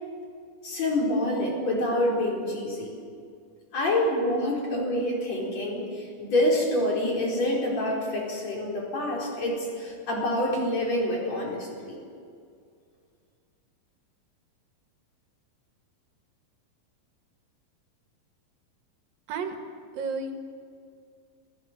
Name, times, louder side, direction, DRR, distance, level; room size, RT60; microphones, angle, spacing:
voice 1, 0.6-2.9 3.7-12.0, left 1 dB, 50° left, -2 dB, 5.5 m, -27 dB
voice 2, 19.9-20.3, right 5 dB, 80° right, 4 dB, 3.5 m, -31 dB
28.5 x 16.0 x 7.5 m, 2.2 s
omnidirectional pair, 4.0 m